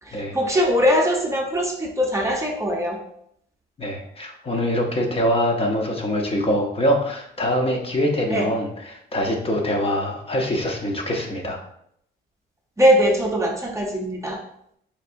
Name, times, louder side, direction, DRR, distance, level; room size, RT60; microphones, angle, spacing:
voice 1, 0.0-3.0 8.3-8.5 12.8-14.4, equal, 15° right, -1 dB, 0.7 m, -21 dB
voice 2, 3.8-11.6, equal, 30° left, 1 dB, 0.7 m, -24 dB
4.4 x 2.6 x 2.5 m, 0.71 s
cardioid pair, 90°, 20 cm